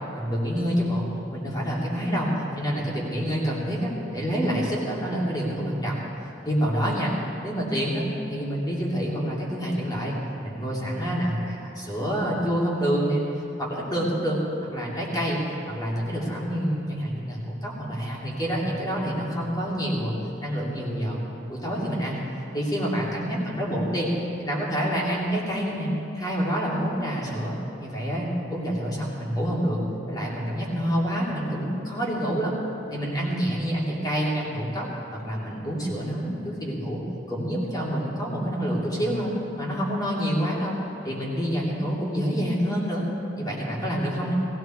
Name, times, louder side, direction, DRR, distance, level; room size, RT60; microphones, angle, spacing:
voice 1, 0.1-2.3 2.6-6.1 6.4-7.1 7.4-10.2 10.4-13.2 13.6-14.4 14.7-15.4 15.7-20.1 20.4-22.2 22.5-24.1 24.4-29.8 30.1-32.6 32.9-34.9 35.1-37.0 37.3-40.8 41.0-43.1 43.4-44.3, equal, 20° left, -5 dB, 3.1 m, -27 dB
19.0 x 15.5 x 4.6 m, 3.0 s
head